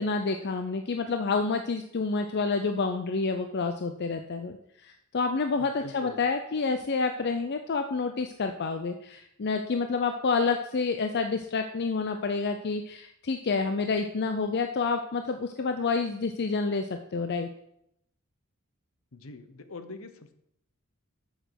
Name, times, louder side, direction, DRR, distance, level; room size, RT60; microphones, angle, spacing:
voice 1, 0.0-17.5, left 4 dB, 50° left, 6 dB, 0.5 m, -29 dB
voice 2, 5.6-6.2 19.1-20.3, left 3 dB, 65° left, 9 dB, 0.9 m, -43 dB
8.0 x 6.4 x 6.3 m, 0.78 s
head